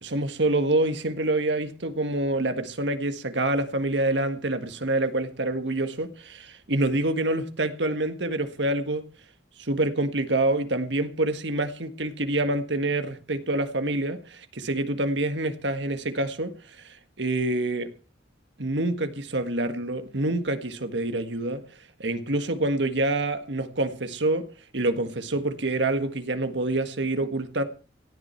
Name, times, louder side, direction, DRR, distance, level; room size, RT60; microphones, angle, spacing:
voice 1, 0.0-9.1 9.6-17.9 18.6-21.6 22.0-24.5 24.7-27.6, right 2 dB, 75° right, 1.7 m, -26 dB
17.5 x 12.5 x 4.6 m
head